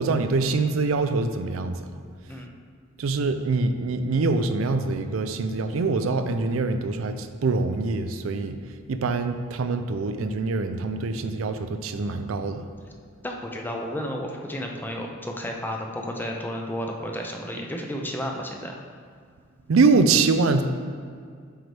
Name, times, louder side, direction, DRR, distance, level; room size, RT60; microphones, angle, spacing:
voice 1, 0.0-1.7 3.0-8.6 8.9-12.7 19.7-20.6, right 3 dB, 85° right, 8 dB, 0.4 m, -24 dB
voice 2, 13.2-18.8, equal, 10° left, 1 dB, 0.6 m, -32 dB
8.0 x 4.6 x 3.4 m, 2.1 s
head